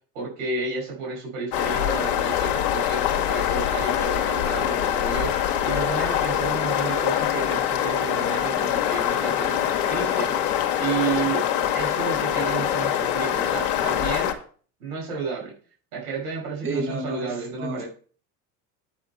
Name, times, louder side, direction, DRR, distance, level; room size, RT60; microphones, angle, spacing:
voice 1, 0.1-10.3 10.8-11.4 11.7-14.3 14.8-15.5 15.9-17.9, right 5 dB, 75° right, -2 dB, 5.3 m, -31 dB
sound 1, 1.5-14.3, left 10 dB, 60° left, 1.9 m, -24 dB
voice 2, 16.6-17.9, right 1 dB, 30° right, 1 dB, 5.7 m, -31 dB
9.0 x 7.6 x 4.5 m, 0.42 s
hypercardioid pair, 75°, 44 cm